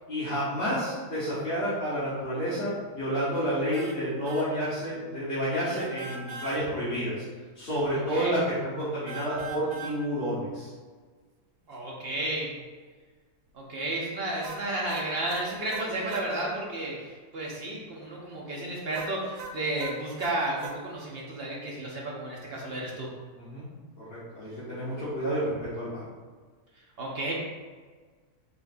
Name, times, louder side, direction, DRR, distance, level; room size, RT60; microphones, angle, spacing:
voice 1, 0.1-7.1 7.5-10.7 23.3-23.6 24.1-26.0, equal, 40° left, -12 dB, 1.5 m, -30 dB
sound 1, 3.7-4.0 4.3-4.5 5.7-6.6 9.1-10.0 14.4-16.3 18.9-20.8, right 4 dB, 85° right, 1.1 m, -40 dB
voice 2, 7.9-8.3 11.7-12.5 13.5-23.1 27.0-27.3, right 1 dB, 50° right, -3 dB, 0.8 m, -32 dB
4.4 x 3.8 x 2.6 m, 1.5 s
omnidirectional pair, 1.7 m